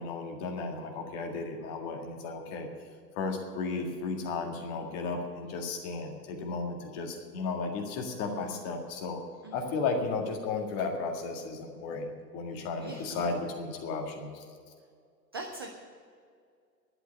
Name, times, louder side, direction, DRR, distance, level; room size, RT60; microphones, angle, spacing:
voice 1, 0.0-2.7 3.2-9.2 9.5-14.4, left 4 dB, 30° left, 3 dB, 1.9 m, -34 dB
voice 2, 8.3-8.6 9.4-9.5 12.8-13.2 15.3-15.7, right 3 dB, 15° right, 2 dB, 0.4 m, -41 dB
11.5 x 8.2 x 9.8 m, 2.2 s
figure-of-eight pair, 110°, 50 cm